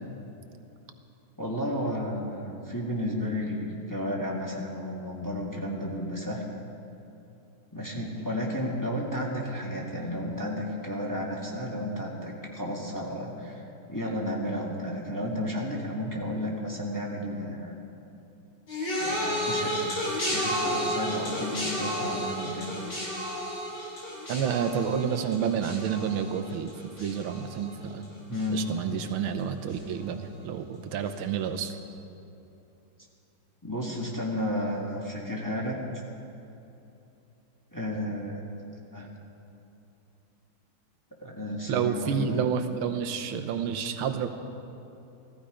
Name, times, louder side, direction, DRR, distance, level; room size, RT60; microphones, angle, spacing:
voice 1, 1.4-6.4 7.7-13.6 13.9-17.7 19.0-19.8 20.3-22.7 28.3-28.7 33.6-36.0 37.7-38.4 38.9-39.1 41.2-42.4, equal, 10° left, -3 dB, 1.7 m, -32 dB
sound 1, 18.7-28.0 28.3-28.9 29.7-29.8, equal, 55° left, 3.7 m, -32 dB
voice 2, 24.3-28.1 28.5-31.8 41.7-44.3, right 7 dB, 85° right, 7 dB, 1.7 m, -29 dB
17.0 x 14.5 x 5.0 m, 2.9 s
omnidirectional pair, 2.3 m